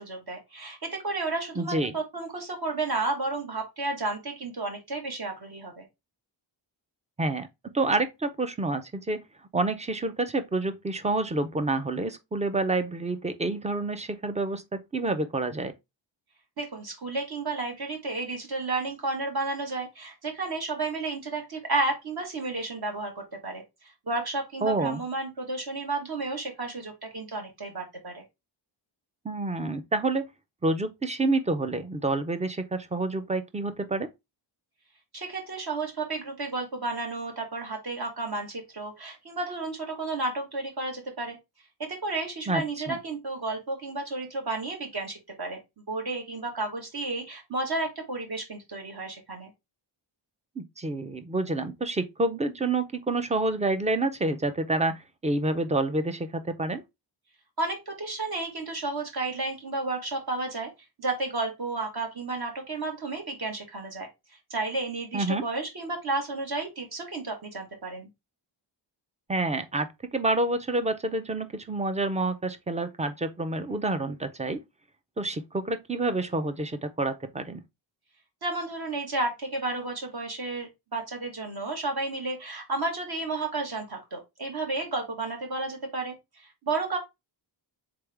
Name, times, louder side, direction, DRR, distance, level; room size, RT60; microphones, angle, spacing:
voice 1, 0.0-5.8 16.6-28.2 35.1-41.4 41.8-45.6 45.9-49.5 57.6-60.7 61.0-64.1 64.5-68.1 78.4-87.0, right 3 dB, 50° right, 1.4 m, -32 dB
voice 2, 1.6-1.9 7.2-7.5 7.7-9.2 9.5-15.7 24.6-25.0 29.2-30.2 30.6-34.1 42.5-43.0 50.6-56.8 65.1-65.4 69.3-74.6 75.2-77.6, right 2 dB, 15° right, 0.4 m, -28 dB
3.9 x 3.4 x 3.3 m
wide cardioid pair, 150°, 47 cm